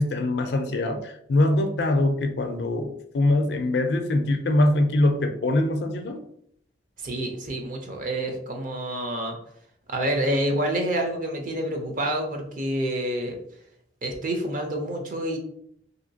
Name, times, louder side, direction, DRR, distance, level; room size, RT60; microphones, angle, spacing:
voice 1, 0.0-6.2, left 1 dB, 65° left, 6 dB, 0.4 m, -23 dB
voice 2, 7.0-9.4 9.9-13.4 14.0-15.4, right 1 dB, 45° right, 3 dB, 0.6 m, -28 dB
3.0 x 2.8 x 2.7 m, 0.71 s
head